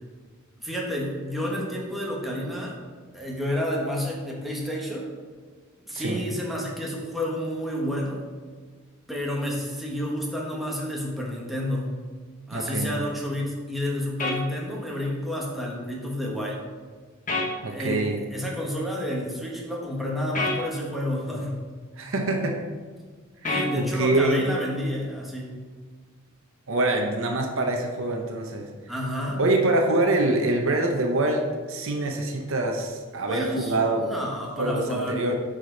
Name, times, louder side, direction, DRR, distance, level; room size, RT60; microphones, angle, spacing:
voice 1, 0.6-2.8 3.1-5.1 5.9-8.2 9.1-11.9 12.5-16.6 17.6-21.6 23.4-25.5 28.9-29.4 33.3-35.2, left 1 dB, ahead, -3 dB, 1.4 m, -30 dB
voice 2, 12.5-12.9 17.6-18.2 22.0-22.6 23.8-24.4 26.7-28.7 29.4-34.1 34.6-35.3, right 2 dB, 65° right, 2 dB, 0.9 m, -25 dB
sound 1, 14.2-14.4 17.3-17.5 20.3-20.6 23.4-23.7, left 2 dB, 40° left, 1.3 m, -26 dB
9.4 x 5.1 x 3.9 m, 1.5 s
head